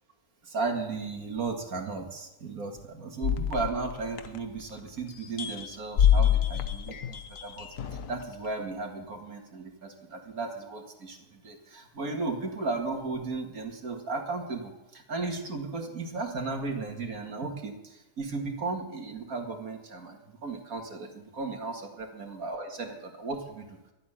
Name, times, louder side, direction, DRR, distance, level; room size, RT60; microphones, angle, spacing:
voice 1, 0.4-23.8, right 3 dB, 85° right, 3 dB, 2.4 m, -35 dB
sound 1, 3.2-4.8 5.2-8.2, left 9 dB, 70° left, 1.3 m, -27 dB
13.0 x 8.4 x 10.0 m, 0.97 s
omnidirectional pair, 1.5 m